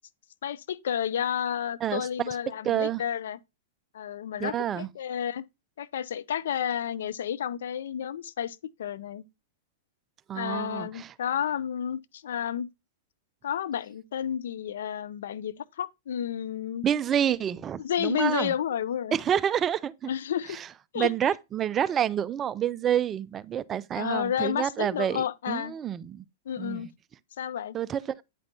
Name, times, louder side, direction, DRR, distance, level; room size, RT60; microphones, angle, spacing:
voice 1, 0.4-3.4 3.9-5.4 5.8-9.2 10.3-12.7 13.4-16.9 17.8-19.2 20.1-20.6 20.9-21.1 24.0-25.7 26.5-26.9 27.4-27.8, left 9 dB, 70° left, 0.4 m, -31 dB
voice 2, 1.8-2.3 2.6-3.0 4.4-4.9 10.3-11.1 16.8-18.5 19.1-20.1 20.5-20.7 21.0-26.3 26.6-26.9 27.7-28.2, right 9 dB, 25° right, 0.3 m, -28 dB
9.0 x 5.2 x 2.7 m
hypercardioid pair, 120°, 0 cm